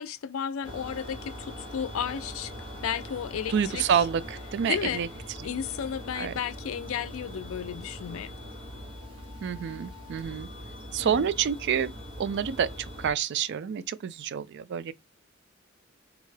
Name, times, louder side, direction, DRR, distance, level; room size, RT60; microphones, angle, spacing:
voice 1, 0.0-2.5 2.8-3.8 4.6-5.0 5.4-8.3 11.0-11.3, left 8 dB, 90° left, 0.4 m, -33 dB
sound 1, 0.6-13.1, equal, 25° right, 1.0 m, -42 dB
voice 2, 3.5-5.1 5.4-5.5 6.2-6.3 9.4-10.5 10.9-12.7 13.0-14.9, right 7 dB, 60° right, 0.3 m, -28 dB
3.5 x 2.1 x 3.2 m
head